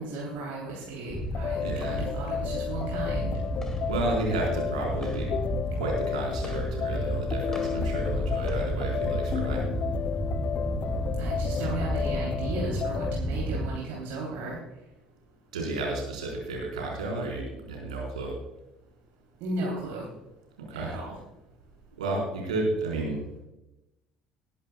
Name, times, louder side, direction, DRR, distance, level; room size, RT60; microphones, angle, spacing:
voice 1, 0.0-3.4 11.2-14.6 19.4-20.1 20.7-21.2, right 3 dB, 55° right, -3 dB, 3.1 m, -35 dB
sound 1, 1.1-13.7, equal, 15° left, 2.3 m, -31 dB
sound 2, 1.3-13.2, left 8 dB, 40° left, 0.3 m, -33 dB
voice 2, 1.6-2.0 3.9-5.3 5.7-9.6 15.5-18.3 20.6-20.9 22.0-23.3, right 2 dB, 75° right, -1 dB, 4.2 m, -32 dB
20.0 x 11.0 x 2.3 m, 0.94 s
figure-of-eight pair, 60°, 4 cm